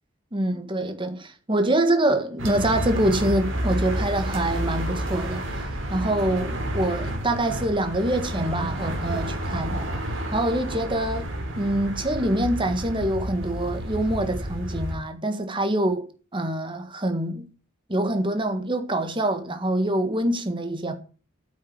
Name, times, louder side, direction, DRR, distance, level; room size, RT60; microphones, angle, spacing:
voice 1, 0.3-5.4 5.9-9.9 10.3-11.3 11.6-16.1 16.3-17.4 17.9-20.9, right 1 dB, 25° right, 1.7 m, -25 dB
sound 1, 2.4-14.9, right 1 dB, 85° right, 3.6 m, -30 dB
8.8 x 7.7 x 7.5 m
head